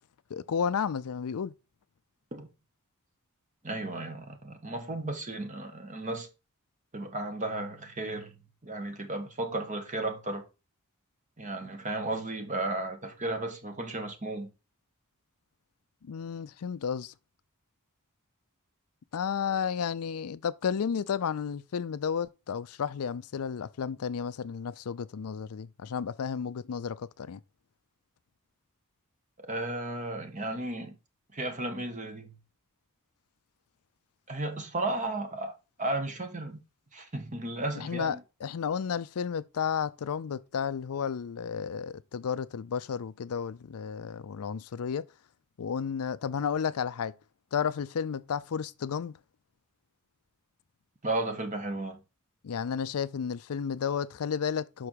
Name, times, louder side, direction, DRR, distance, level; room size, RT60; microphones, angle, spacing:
voice 1, 0.3-1.5 16.0-17.1 19.1-27.4 37.8-45.1 45.6-47.1 47.5-49.2 52.4-54.9, left 7 dB, 75° left, 0.4 m, -32 dB
voice 2, 3.6-6.3 6.9-10.4 11.4-14.5 29.5-31.0 31.3-32.4 34.3-36.6 36.9-38.2 51.0-52.0, right 2 dB, 35° right, 1.4 m, -34 dB
6.1 x 4.8 x 4.5 m
head